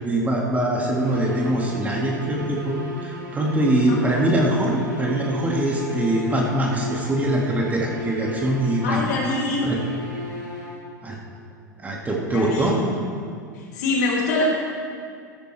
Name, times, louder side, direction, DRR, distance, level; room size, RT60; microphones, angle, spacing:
voice 1, 0.0-9.1 9.6-9.8 11.0-11.2 11.8-12.8, right 1 dB, 15° right, -1 dB, 2.0 m, -23 dB
sound 1, 0.9-11.1, equal, 85° right, 3.2 m, -35 dB
voice 2, 8.8-9.7 12.3-12.9 13.5-14.4, left 3 dB, 60° left, -3 dB, 2.9 m, -25 dB
13.5 x 12.5 x 3.4 m, 2.2 s
figure-of-eight pair, 85°, 10 cm